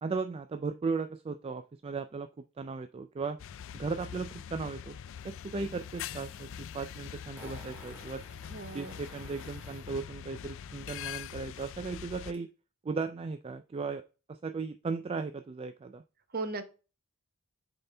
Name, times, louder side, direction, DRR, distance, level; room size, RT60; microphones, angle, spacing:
voice 1, 0.0-2.3 2.6-3.4 3.7-5.0 5.2-6.5 6.7-8.2 8.7-12.5 12.8-14.0 14.3-16.0, right 4 dB, 25° right, 9 dB, 0.3 m, -36 dB
sound 1, 3.4-12.3, left 8 dB, 60° left, 0.4 m, -43 dB
Fart, 7.4-9.9 12.3-12.4, equal, 10° right, 1.8 m, -52 dB
voice 2, 8.5-8.9 16.3-16.6, right 3 dB, 45° right, 8 dB, 0.9 m, -36 dB
6.6 x 4.3 x 3.3 m, 0.32 s
head